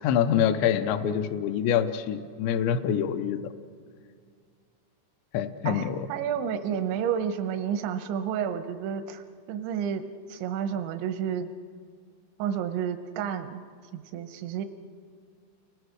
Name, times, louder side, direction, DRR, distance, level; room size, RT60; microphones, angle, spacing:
voice 1, 0.0-3.5 5.3-6.1, left 9 dB, 80° left, 9 dB, 3.0 m, -26 dB
voice 2, 5.7-9.2 9.5-11.5 12.4-13.6 13.9-14.7, right 8 dB, 85° right, 7 dB, 3.1 m, -30 dB
30.0 x 20.5 x 4.8 m, 2.1 s
omnidirectional pair, 5.2 m